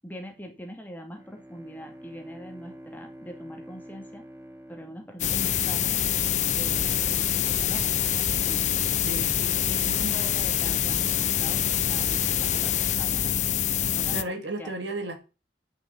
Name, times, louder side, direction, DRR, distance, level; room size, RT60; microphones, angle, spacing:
voice 1, 0.0-4.2 4.7-5.9 6.5-9.1 9.4-11.6 11.9-12.7 13.0-13.3 13.9-14.1 14.6-14.7, equal, 10° left, 2.1 m, -42 dB
Bowed string instrument, 1.1-6.3, equal, 15° right, 1.7 m, -47 dB
sound 1, 5.2-14.2, left 10 dB, 40° left, 0.6 m, -25 dB
voice 2, 9.0-9.4 9.8-10.2 14.1-15.2, right 1 dB, 90° right, 2.8 m, -34 dB
9.2 x 6.8 x 7.2 m
head